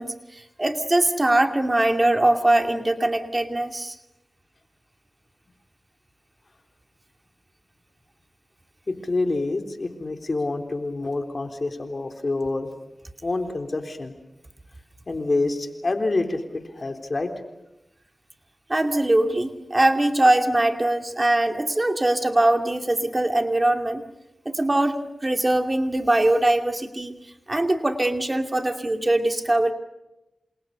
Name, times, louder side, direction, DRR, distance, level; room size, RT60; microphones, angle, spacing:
voice 1, 0.0-3.9 18.7-24.0 24.5-27.1 27.5-29.7, right 1 dB, 30° right, 6 dB, 2.5 m, -22 dB
voice 2, 8.9-12.7 13.2-14.1 15.1-17.3, left 2 dB, 50° left, 5 dB, 3.6 m, -27 dB
28.0 x 27.5 x 6.8 m, 0.93 s
cardioid pair, 45°, 0 cm